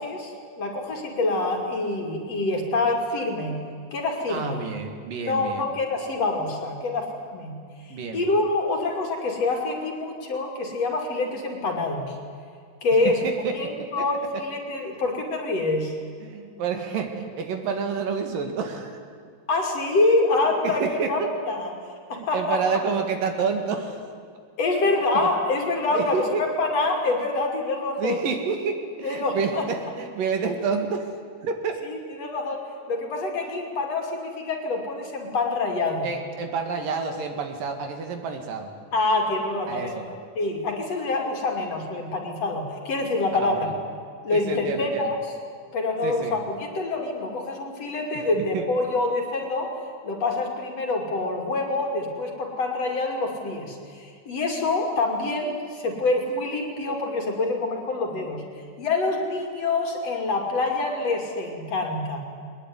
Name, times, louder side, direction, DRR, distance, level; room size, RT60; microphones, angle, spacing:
voice 1, 0.0-3.6 3.9-4.6 5.3-7.5 8.1-12.1 12.8-13.2 13.5-15.9 19.5-21.2 21.5-21.7 22.1-22.8 24.6-28.2 29.0-29.6 31.9-36.1 38.9-39.9 40.4-43.7 44.2-45.3 45.7-58.4 58.8-62.2, left 2 dB, 45° left, 2 dB, 3.6 m, -26 dB
voice 2, 4.3-5.7 7.9-8.3 13.0-13.6 14.0-14.1 16.2-19.0 20.6-21.3 22.1-24.0 24.8-24.9 25.2-25.3 25.9-26.4 28.0-31.1 31.4-31.8 36.0-38.7 39.7-40.1 43.4-43.7 44.3-45.1 46.0-46.4 48.4-48.6, right 5 dB, 70° right, 5 dB, 3.6 m, -29 dB
22.0 x 20.0 x 9.7 m, 2.2 s
omnidirectional pair, 4.1 m